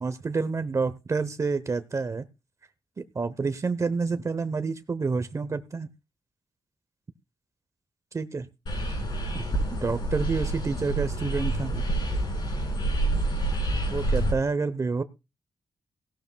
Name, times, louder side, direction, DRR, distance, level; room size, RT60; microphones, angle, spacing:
voice 1, 0.0-2.2 3.0-5.9 8.1-8.5 9.3-9.4 9.7-11.9 13.9-15.0, right 4 dB, 40° right, 11 dB, 0.9 m, -28 dB
sound 1, 8.7-14.3, right 1 dB, 65° left, 5.3 m, -28 dB
17.0 x 12.0 x 2.3 m, 0.27 s
cardioid pair, 65°, 8 cm